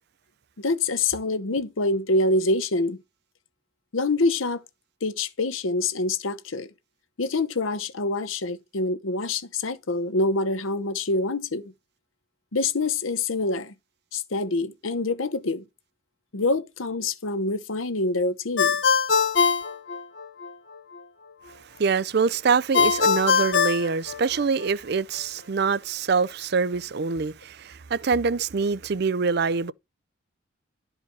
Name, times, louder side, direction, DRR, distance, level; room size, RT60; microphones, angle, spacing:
voice 1, 0.6-3.0 3.9-4.6 5.0-6.7 7.2-11.7 12.5-13.7 14.1-15.6 16.3-18.8, left 2 dB, 80° left, 0.9 m, -26 dB
Ringtone, 18.6-20.5 22.7-24.7, left 6 dB, 65° left, 1.6 m, -22 dB
voice 2, 21.6-29.7, right 5 dB, 50° right, 0.5 m, -25 dB
12.0 x 4.9 x 4.6 m
head